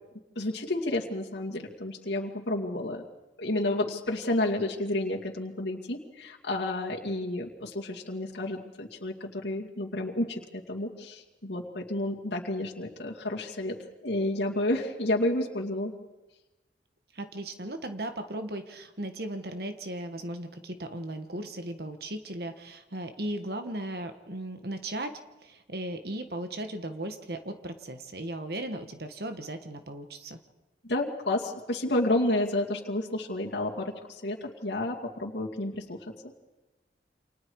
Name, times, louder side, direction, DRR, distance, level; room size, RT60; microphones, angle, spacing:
voice 1, 0.4-3.0 3.4-13.8 14.0-15.9 30.8-36.0, left 1 dB, 70° left, -3 dB, 2.4 m, -30 dB
voice 2, 17.1-30.4, right 1 dB, 55° right, 7 dB, 1.5 m, -37 dB
29.5 x 27.0 x 4.8 m, 1.1 s
head